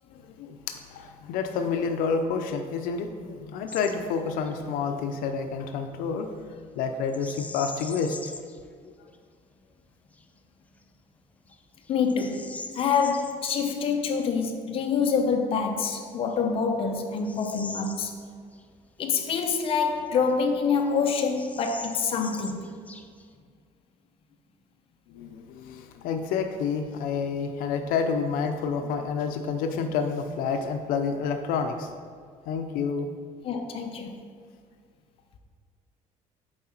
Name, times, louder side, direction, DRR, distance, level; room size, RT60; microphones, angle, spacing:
voice 1, 0.1-8.2 25.1-31.9 32.5-33.1, left 5 dB, 85° left, 6 dB, 0.5 m, -29 dB
Bird vocalization bird call bird song, 3.7-4.0 4.3-4.5 7.1-8.6 9.1-9.2 9.8-10.2 10.8-10.9 11.5-13.4 15.5-15.6 16.2-18.7 19.0-19.1 19.8-20.6 20.8-20.9 21.2-23.4, left 3 dB, 10° left, 0.3 m, -42 dB
voice 2, 11.9-18.2 19.0-22.7 33.4-34.2, left 5 dB, 40° left, 3 dB, 0.7 m, -26 dB
7.6 x 4.7 x 4.4 m, 2.1 s
cardioid pair, 150°, 14 cm